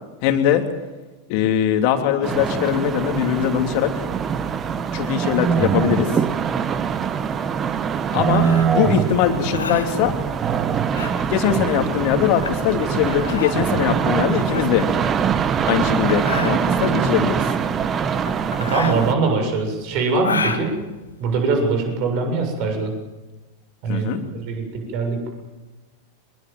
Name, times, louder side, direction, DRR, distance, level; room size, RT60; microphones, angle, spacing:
voice 1, 0.2-0.6 1.3-3.9 4.9-6.2 8.1-10.2 11.3-14.9 15.7-17.6 23.9-24.2, left 9 dB, 45° left, 6 dB, 3.1 m, -21 dB
sound 1, 2.2-19.1, right 7 dB, 25° right, 1.5 m, -23 dB
sound 2, 8.3-21.8, left 5 dB, 70° left, 2.2 m, -31 dB
voice 2, 18.6-20.7 21.2-22.9 23.8-24.6 24.9-25.3, right 4 dB, 45° right, 4 dB, 7.4 m, -22 dB
24.5 x 21.5 x 7.7 m, 1.1 s
figure-of-eight pair, 90°, 0 cm